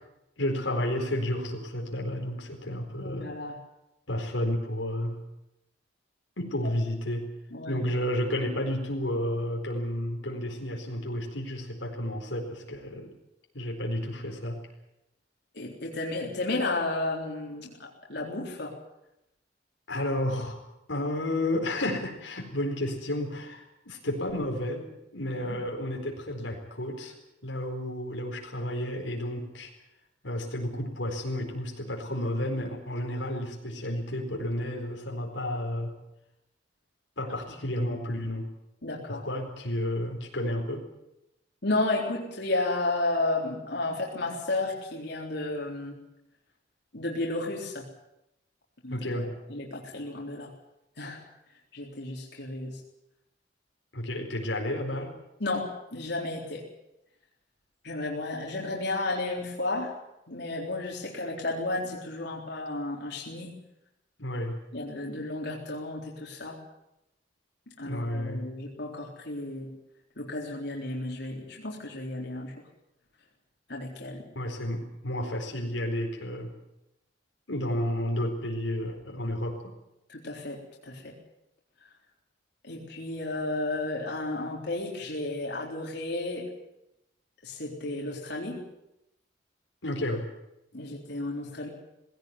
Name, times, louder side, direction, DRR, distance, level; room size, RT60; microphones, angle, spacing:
voice 1, 0.4-3.3 4.1-5.2 6.4-7.3 7.7-13.1 13.5-14.6 19.9-20.6 20.9-27.1 27.4-29.7 30.2-35.9 37.2-38.5 39.1-40.9 48.9-49.3 53.9-55.2 64.2-64.6 67.8-68.5 74.3-76.5 77.5-79.7 89.8-90.3, left 1 dB, 90° left, 1 dB, 4.4 m, -31 dB
voice 2, 3.0-3.6 7.5-7.8 15.5-18.8 25.3-25.6 38.8-39.3 41.6-46.0 46.9-47.9 48.8-49.2 49.5-50.5 51.0-51.2 51.7-52.8 55.4-56.7 57.8-59.9 60.3-63.6 64.7-66.6 67.8-69.7 70.2-72.5 73.7-74.3 80.1-81.1 81.8-81.9 82.6-86.5 87.4-88.6 90.7-91.7, left 2 dB, 65° left, -2 dB, 3.9 m, -33 dB
20.0 x 17.0 x 9.6 m, 0.87 s
head